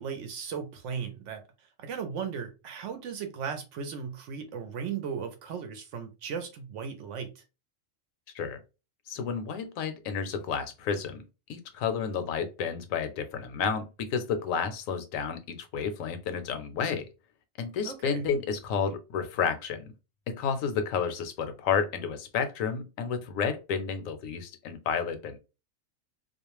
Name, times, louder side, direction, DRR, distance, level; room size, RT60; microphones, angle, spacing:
voice 1, 0.0-1.4 1.8-7.4 17.8-18.3, right 6 dB, 70° right, 0.8 m, -36 dB
voice 2, 9.1-11.2 11.5-17.1 17.6-19.9 20.3-25.4, left 6 dB, 75° left, 0.9 m, -31 dB
2.4 x 2.1 x 2.9 m
omnidirectional pair, 1.4 m